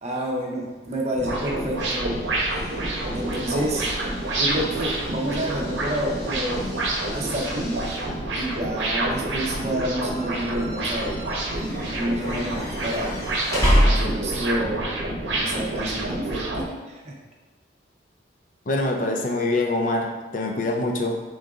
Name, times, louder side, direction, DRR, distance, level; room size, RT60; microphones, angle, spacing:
voice 1, 0.0-2.6 3.1-3.9 4.3-6.8 7.1-7.8 8.3-11.2 11.9-13.2 13.8-15.0 15.3-17.1, right 1 dB, 35° right, -1 dB, 0.6 m, -29 dB
sound 1, 1.1-16.7, right 2 dB, 90° right, 0.8 m, -28 dB
sound 2, 1.8-14.6, equal, 20° left, 0.9 m, -30 dB
voice 2, 18.7-21.2, left 2 dB, 45° left, 2 dB, 0.4 m, -24 dB
4.8 x 3.7 x 2.4 m, 1.2 s
head